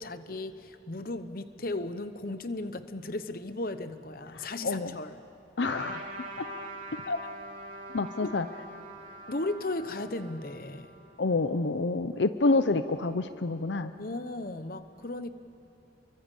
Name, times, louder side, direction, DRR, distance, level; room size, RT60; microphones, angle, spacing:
voice 1, 0.0-5.2 8.2-8.3 9.3-10.9 13.7-15.3, left 2 dB, 50° left, 11 dB, 1.0 m, -36 dB
voice 2, 4.3-5.0 5.6-6.1 6.4-6.5 6.9-7.2 7.9-8.5 11.2-13.9, left 3 dB, 75° left, 11 dB, 0.7 m, -28 dB
Trumpet, 5.6-11.5, right 1 dB, 45° right, 3.1 m, -43 dB
30.0 x 23.5 x 8.4 m, 2.9 s
head